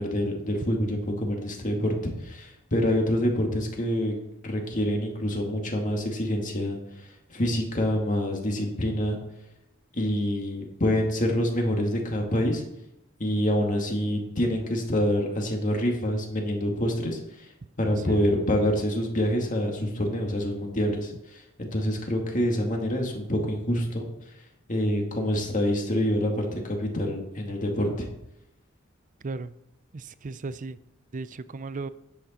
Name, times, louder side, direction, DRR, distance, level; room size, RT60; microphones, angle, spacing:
voice 1, 0.0-4.1 4.4-9.2 9.9-12.6 13.2-17.2 17.8-24.1 24.7-28.1, equal, 40° left, 1 dB, 2.1 m, -26 dB
voice 2, 29.9-30.8 31.1-31.9, right 3 dB, 40° right, 15 dB, 0.5 m, -35 dB
10.0 x 8.2 x 4.3 m, 0.84 s
head